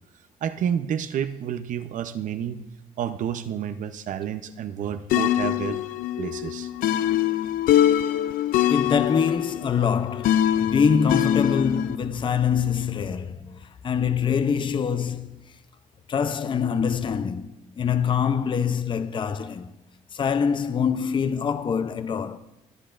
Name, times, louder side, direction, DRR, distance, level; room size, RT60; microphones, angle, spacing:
voice 1, 0.4-2.6 3.0-5.8 6.2-6.7, right 9 dB, 65° right, 0.8 m, -29 dB
sound 1, 5.1-12.0, left 11 dB, 80° left, 0.4 m, -23 dB
voice 2, 8.7-15.4 16.1-19.7 20.1-22.4, left 7 dB, 35° left, 0.6 m, -24 dB
24.5 x 10.0 x 2.5 m
cardioid pair, 105°, 14 cm